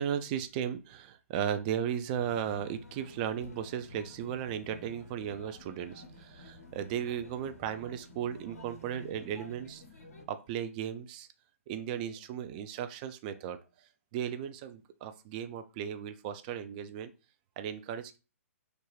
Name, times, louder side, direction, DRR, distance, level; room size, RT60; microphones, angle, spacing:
voice 1, 0.0-9.8 10.3-11.3 11.7-13.6 14.1-17.1 17.6-18.2, right 9 dB, 35° right, 10 dB, 0.4 m, -36 dB
sound 1, 2.1-10.2, left 1 dB, 85° left, 0.7 m, -51 dB
2.5 x 2.3 x 3.1 m, 0.31 s
figure-of-eight pair, 125°, 8 cm